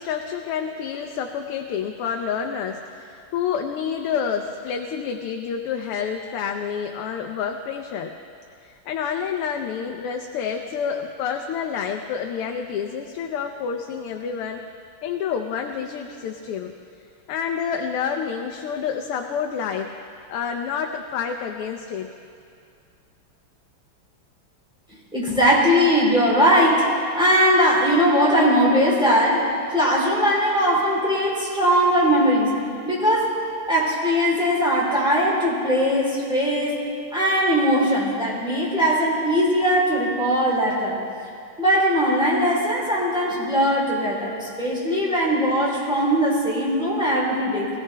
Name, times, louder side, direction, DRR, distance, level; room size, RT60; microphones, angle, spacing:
voice 1, 0.0-8.1 8.6-14.6 15.0-16.7 17.3-19.9 20.3-22.1, left 7 dB, 85° left, 3 dB, 1.6 m, -28 dB
voice 2, 25.1-26.9 27.1-32.5 32.8-33.3 33.7-36.8 37.1-41.0 41.6-47.7, equal, ahead, -6 dB, 3.3 m, -20 dB
20.5 x 16.0 x 3.3 m, 2.4 s
omnidirectional pair, 2.4 m